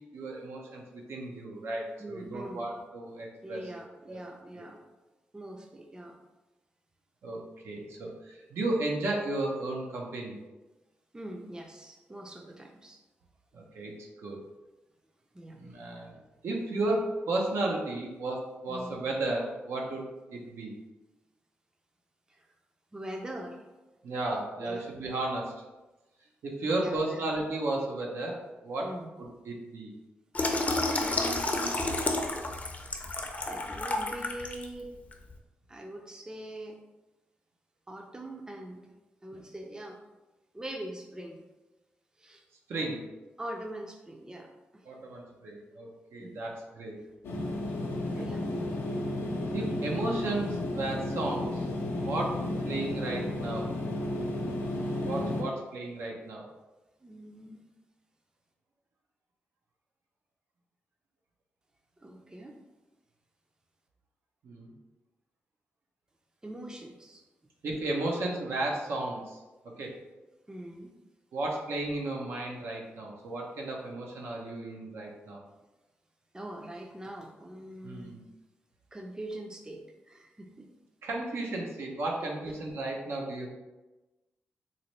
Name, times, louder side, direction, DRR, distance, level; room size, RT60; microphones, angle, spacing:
voice 1, 0.0-3.6 4.1-4.2 4.6-4.7 7.2-10.4 13.5-14.4 15.5-16.2 16.4-20.7 24.0-25.6 26.4-28.9 29.2-29.9 42.7-43.0 44.9-47.0 48.1-48.3 49.5-51.6 52.0-52.4 52.6-53.7 55.0-56.5 64.4-64.7 67.6-69.4 69.8-69.9 71.3-75.4 77.8-78.2 81.0-83.5, right 2 dB, 75° right, -1 dB, 0.7 m, -34 dB
voice 2, 2.0-2.7 3.4-4.8 5.3-6.2 11.1-13.0 15.3-15.8 18.7-19.0 22.3-22.5 22.9-23.7 24.6-24.9 26.6-27.2 28.8-29.1 31.0-31.9 33.5-34.9 35.7-36.8 37.9-38.8 39.2-40.0 40.5-41.4 42.2-42.4 43.4-44.9 46.2-46.4 47.0-47.1 48.1-48.5 52.4-52.8 57.0-57.6 62.0-62.6 66.4-67.2 70.5-70.9 76.3-78.2 78.9-80.7 82.2-82.6, right 1 dB, 15° right, 3 dB, 0.5 m, -43 dB
Water tap faucet / Sink (filling or washing), 30.3-34.6 35.1-35.3, left 2 dB, 35° left, 0.5 m, -30 dB
sound 1, 47.2-55.4, left 1 dB, 90° left, 0.5 m, -33 dB
4.0 x 2.1 x 3.1 m, 1.1 s
cardioid pair, 60°, 4 cm